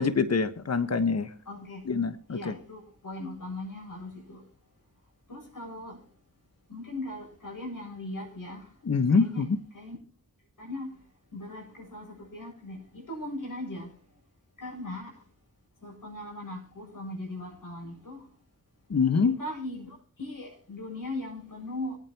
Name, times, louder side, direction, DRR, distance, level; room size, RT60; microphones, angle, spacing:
voice 1, 0.0-1.3 1.8-2.5 8.8-9.6 18.9-19.4, left 5 dB, 45° left, 11 dB, 1.2 m, -25 dB
voice 2, 1.5-1.8 2.3-4.4 5.3-6.0 6.7-8.7 9.1-9.4 9.7-10.0 10.6-10.9 11.3-13.9 14.6-15.1 15.8-18.3 19.2-22.0, left 1 dB, 65° left, 0 dB, 7.9 m, -39 dB
25.0 x 9.2 x 2.9 m, 0.38 s
cardioid pair, 45°, 34 cm